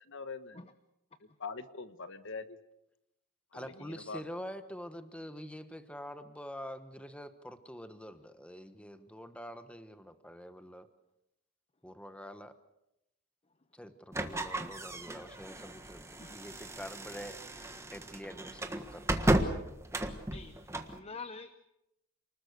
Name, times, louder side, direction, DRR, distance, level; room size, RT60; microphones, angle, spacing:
voice 1, 0.1-0.6 1.4-2.6 3.5-4.2, left 4 dB, 60° left, 11 dB, 1.2 m, -43 dB
voice 2, 3.5-10.9 11.8-12.5 13.7-19.2, equal, 5° left, 9 dB, 1.2 m, -46 dB
sound 1, 14.1-21.0, right 1 dB, 10° right, 1.4 m, -34 dB
voice 3, 20.3-21.5, left 4 dB, 25° left, 10 dB, 0.9 m, -46 dB
29.0 x 20.0 x 6.7 m, 0.87 s
head